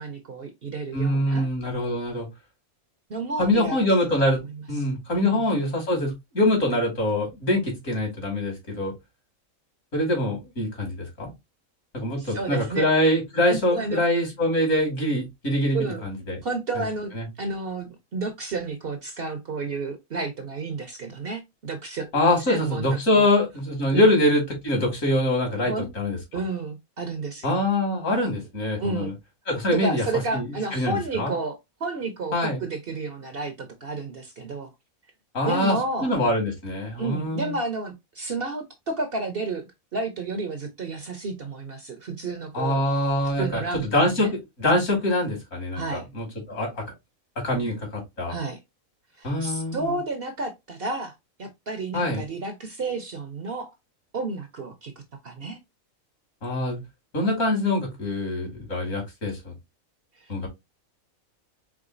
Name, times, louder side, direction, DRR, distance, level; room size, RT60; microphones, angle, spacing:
voice 1, 0.0-1.5 3.1-3.8 4.8-4.9 5.2-5.4 12.2-12.8 13.5-14.0 15.7-16.0 16.4-17.1 17.4-22.1 22.5-23.3 23.9-24.1 25.6-25.9 26.3-27.6 28.8-29.1 29.7-34.7 35.4-36.1 37.0-42.8 43.4-44.3 45.7-46.1 48.3-48.6 49.2-51.1 51.4-53.7 54.1-54.9 55.2-55.6 60.2-60.3, right 3 dB, 50° right, 0.8 m, -31 dB
voice 2, 0.9-2.3 3.4-4.4 4.7-8.9 9.9-11.3 11.9-16.4 16.7-16.8 17.1-17.2 22.1-26.2 27.4-29.1 29.5-30.0 30.3-31.3 32.3-32.6 35.3-37.5 42.5-46.8 47.4-48.3 49.2-50.0 51.9-52.2 56.4-56.8 57.1-59.5 60.3-60.5, left 1 dB, 65° left, 2.6 m, -24 dB
4.8 x 3.6 x 2.5 m
omnidirectional pair, 1.5 m